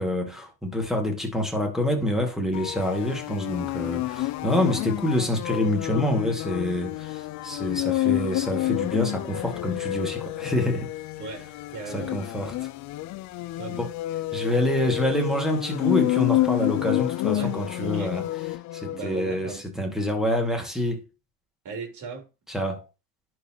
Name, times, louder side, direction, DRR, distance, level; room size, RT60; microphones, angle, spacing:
voice 1, 0.0-10.9 11.9-12.7 13.7-13.9 14.3-18.3 18.7-21.0 22.5-22.9, left 1 dB, ahead, 2.3 m, -27 dB
sound 1, 2.5-19.1, left 16 dB, 40° left, 0.5 m, -29 dB
voice 2, 11.2-12.1 13.6-13.8 17.3-18.1 18.9-19.7 21.6-22.3, right 4 dB, 40° right, 3.8 m, -37 dB
10.5 x 4.6 x 3.1 m
hypercardioid pair, 85°, 46 cm